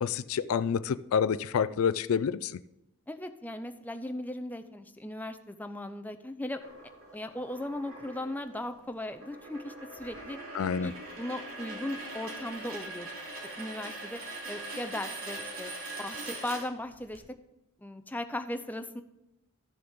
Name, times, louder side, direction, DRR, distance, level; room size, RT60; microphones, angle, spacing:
voice 1, 0.0-2.6 10.5-10.9, left 7 dB, 80° left, 16 dB, 0.4 m, -28 dB
voice 2, 3.1-6.6 7.1-10.4 10.8-13.1 13.6-14.2 14.5-15.7 16.0-17.2 17.8-19.0, left 1 dB, 10° left, 8 dB, 0.6 m, -37 dB
sound 1, 6.6-17.2, right 2 dB, 90° right, 2.7 m, -42 dB
13.5 x 6.7 x 3.7 m, 0.89 s
head